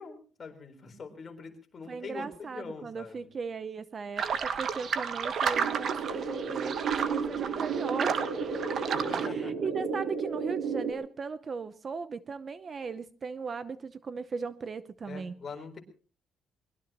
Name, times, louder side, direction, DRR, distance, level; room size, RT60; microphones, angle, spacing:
voice 1, 0.0-3.2 8.7-9.6 15.1-15.8, left 5 dB, 35° left, 3 dB, 4.1 m, -44 dB
voice 2, 1.9-8.5 9.2-15.3, right 5 dB, 35° right, 13 dB, 0.7 m, -37 dB
sound 1, 4.2-9.3, right 6 dB, 50° right, 1.4 m, -32 dB
sound 2, 5.5-10.9, right 5 dB, 85° right, 3.4 m, -33 dB
23.0 x 21.0 x 3.0 m, 0.41 s
cardioid pair, 140°, 0 cm